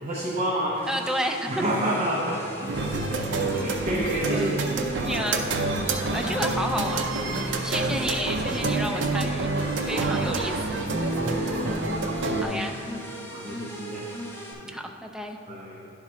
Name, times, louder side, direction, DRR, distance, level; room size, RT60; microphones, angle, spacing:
voice 1, 0.0-0.9 1.5-5.4 9.8-10.2 10.9-12.4 13.3-14.1 14.6-14.7 15.5-15.9, equal, 35° right, -4 dB, 0.7 m, -30 dB
sound 1, 0.8-14.5, equal, 10° left, 1.1 m, -38 dB
voice 2, 0.9-1.6 4.3-4.5 5.0-5.5 6.1-9.5 9.9-10.8 12.4-12.8 14.7-15.4, equal, 5° right, 2 dB, 0.5 m, -31 dB
sound 2, 2.7-12.4, right 3 dB, 65° right, 0.5 m, -28 dB
sound 3, 5.5-10.5, left 2 dB, 50° left, 0.7 m, -41 dB
10.5 x 3.7 x 4.3 m, 2.7 s
head